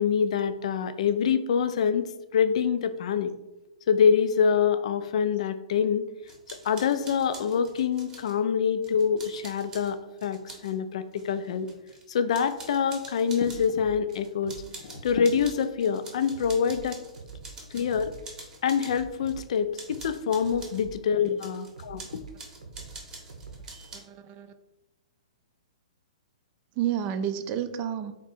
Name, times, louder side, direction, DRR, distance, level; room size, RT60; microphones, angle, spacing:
voice 1, 0.0-3.3 3.9-6.1 6.6-11.7 12.1-17.0 17.7-18.1 18.6-22.0, left 7 dB, 60° left, 10 dB, 0.4 m, -25 dB
sound 1, 6.3-8.4 8.8-10.7 11.1-12.0 12.3-13.7 14.1-19.5 19.7-20.8 21.4-24.0, right 3 dB, 15° right, 0.8 m, -46 dB
sound 2, 13.4-15.5 15.8-16.0 16.3-18.3 18.5-21.4 21.8-24.3, right 5 dB, 75° right, 0.7 m, -46 dB
voice 2, 23.9-24.5 26.8-28.1, right 9 dB, 35° right, 9 dB, 0.4 m, -31 dB
3.7 x 2.6 x 4.1 m, 0.99 s
hypercardioid pair, 120°, 4 cm